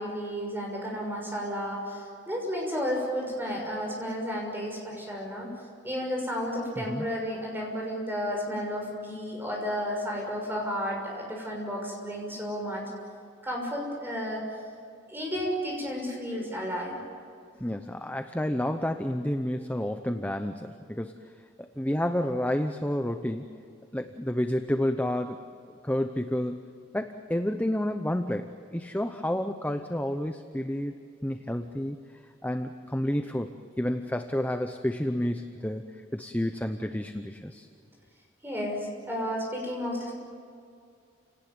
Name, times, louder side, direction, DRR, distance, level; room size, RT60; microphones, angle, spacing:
voice 1, 0.0-5.5 5.8-12.8 13.4-14.4 15.1-17.0 38.4-40.1, equal, 10° right, -1 dB, 6.4 m, -32 dB
voice 2, 17.6-21.1 21.6-23.5 23.9-25.4 25.8-26.7 26.9-30.9 31.2-32.0 32.4-37.7, left 1 dB, 10° left, 7 dB, 0.8 m, -30 dB
30.0 x 18.5 x 9.4 m, 2.3 s
head